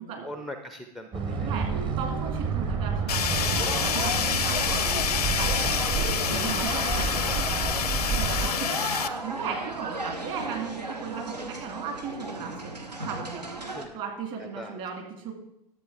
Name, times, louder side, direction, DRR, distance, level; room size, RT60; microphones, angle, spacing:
voice 1, 0.2-1.5 13.7-14.0 14.4-15.0, left 1 dB, ahead, 6 dB, 0.4 m, -41 dB
sound 1, 1.1-8.5, right 5 dB, 25° right, 0.9 m, -30 dB
voice 2, 2.0-8.9 9.2-12.7 13.0-13.4 13.9-15.3, right 6 dB, 40° right, 2 dB, 2.1 m, -37 dB
Fire, 3.1-9.1, left 8 dB, 70° left, 0.5 m, -28 dB
sound 2, 3.3-13.9, right 2 dB, 85° right, 1.0 m, -35 dB
11.5 x 7.5 x 3.5 m, 0.83 s
figure-of-eight pair, 90°, 21 cm